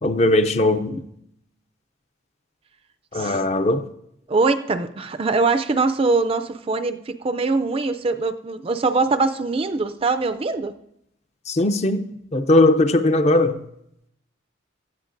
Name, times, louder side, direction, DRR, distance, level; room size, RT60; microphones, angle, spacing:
voice 1, 0.0-1.0 3.1-3.9 11.5-13.6, left 2 dB, 35° left, 0.5 m, -19 dB
voice 2, 4.3-10.7, right 3 dB, 30° right, 0.4 m, -22 dB
17.0 x 13.0 x 2.6 m
head